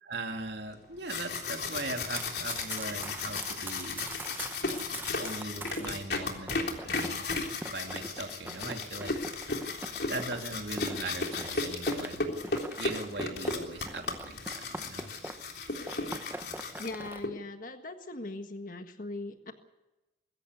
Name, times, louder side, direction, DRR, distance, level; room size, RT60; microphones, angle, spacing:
voice 1, 0.0-4.1 4.9-9.1 10.1-12.3 12.8-15.1, right 2 dB, 70° right, 4 dB, 2.8 m, -40 dB
sound 1, 0.8-17.3, left 3 dB, 65° left, 3.5 m, -35 dB
Run, 2.0-5.9 6.5-15.6 15.8-17.2, right 2 dB, 10° right, 0.9 m, -43 dB
voice 2, 16.8-19.5, left 2 dB, 50° left, 6 dB, 1.6 m, -40 dB
22.0 x 16.0 x 8.2 m, 1.0 s
head